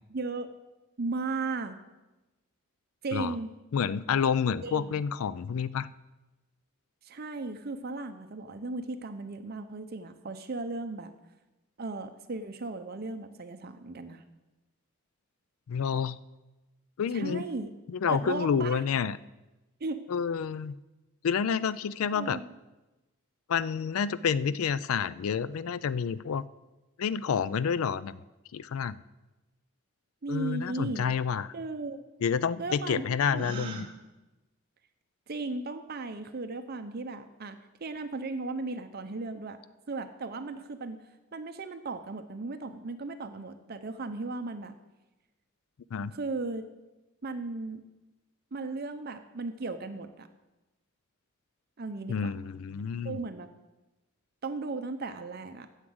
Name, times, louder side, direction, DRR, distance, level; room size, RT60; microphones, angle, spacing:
voice 1, 0.1-0.5 1.0-1.8 3.0-3.5 4.6-5.0 7.0-11.1 11.8-14.2 17.1-17.7 18.1-18.8 19.8-20.0 22.1-22.5 30.2-31.0 31.5-32.0 32.6-33.4 35.3-39.6 39.9-41.0 41.3-44.8 46.1-46.7 47.2-47.8 48.5-50.3 51.8-52.3 53.0-53.5 54.4-55.7, right 3 dB, 45° right, 8 dB, 0.6 m, -36 dB
voice 2, 3.7-5.9 15.7-16.2 17.0-17.4 17.9-19.2 20.1-20.8 21.2-22.4 23.5-26.5 27.0-28.2 28.5-29.0 30.3-31.5 32.2-33.9 45.9-46.1 52.1-53.2, left 6 dB, 75° left, 17 dB, 0.4 m, -29 dB
Gasp, 33.3-33.9, right 2 dB, 25° right, 1.2 m, -38 dB
9.7 x 7.3 x 7.8 m, 1.1 s
head